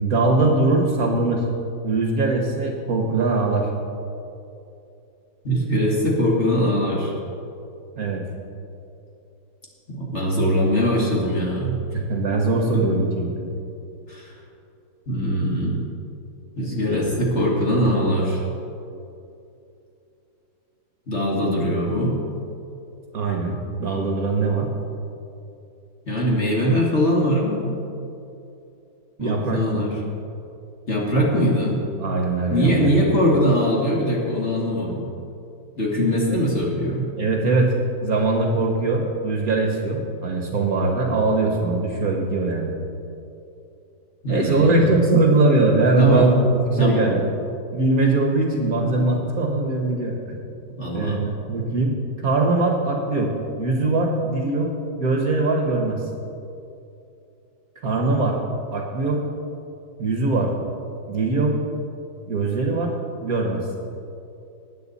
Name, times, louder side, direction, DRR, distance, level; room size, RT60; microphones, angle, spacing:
voice 1, 0.0-1.4 1.8-3.7 8.0-8.2 11.9-13.4 23.1-24.7 29.2-29.8 32.0-32.9 37.2-37.7 38.0-42.8 44.3-47.3 47.7-50.4 50.9-52.0 52.2-54.7 55.0-56.0 57.8-58.4 58.7-59.2 60.0-60.5 61.1-61.6 62.3-62.9 63.2-63.6, right 3 dB, 50° right, 1 dB, 1.6 m, -21 dB
voice 2, 5.4-7.1 9.9-11.8 12.7-12.8 14.1-14.2 15.1-15.8 16.6-18.4 21.1-22.2 26.1-27.7 29.2-29.9 30.9-31.8 32.5-35.0 35.8-37.1 44.2-44.9 46.0-46.3 46.8-47.1 50.8-51.2, equal, 35° left, -3 dB, 2.3 m, -21 dB
19.5 x 9.0 x 4.1 m, 2.7 s
omnidirectional pair, 2.2 m